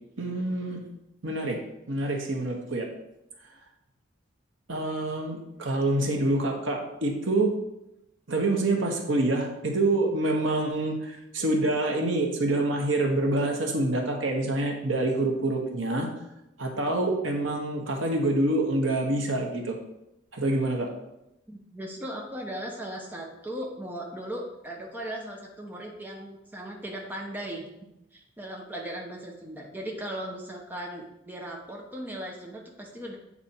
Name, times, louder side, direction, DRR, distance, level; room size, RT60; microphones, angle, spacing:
voice 1, 0.2-0.8 1.2-1.6 1.9-2.9 4.7-7.5 8.3-16.1 16.6-19.8 20.3-20.9, right 2 dB, 90° right, 2 dB, 1.2 m, -26 dB
voice 2, 21.5-27.7 28.1-33.1, right 1 dB, 10° right, -1 dB, 0.9 m, -37 dB
8.2 x 4.3 x 4.4 m, 0.89 s
head